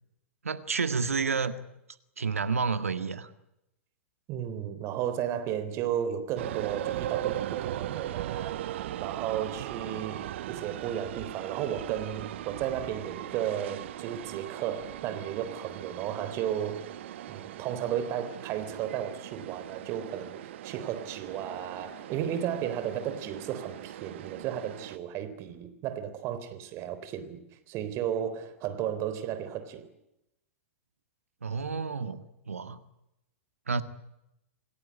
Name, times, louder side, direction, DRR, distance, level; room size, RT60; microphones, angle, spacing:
voice 1, 0.4-1.5 2.2-3.3 31.4-32.8 33.7-33.8, right 5 dB, 80° right, 1.8 m, -30 dB
voice 2, 4.3-8.7 9.0-16.9 17.3-27.4 27.7-29.9, right 10 dB, 35° right, 3.7 m, -34 dB
sound 1, 6.4-25.0, right 12 dB, 55° right, 1.2 m, -39 dB
27.5 x 17.5 x 9.6 m
figure-of-eight pair, 105°, 8 cm